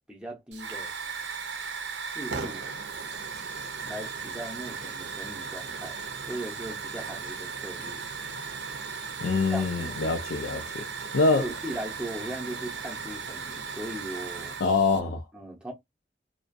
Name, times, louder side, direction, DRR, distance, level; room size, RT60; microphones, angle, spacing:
voice 1, 0.1-1.0 2.0-2.7 3.8-6.0 6.3-8.1 9.5-10.1 11.3-14.6 15.3-15.7, right 1 dB, 5° right, 0.6 m, -38 dB
Hiss / Fire, 0.5-15.0, right 5 dB, 75° right, 0.6 m, -37 dB
voice 2, 9.2-10.9 11.1-11.5 14.6-15.2, left 3 dB, 85° left, 0.4 m, -25 dB
2.3 x 2.1 x 2.5 m
head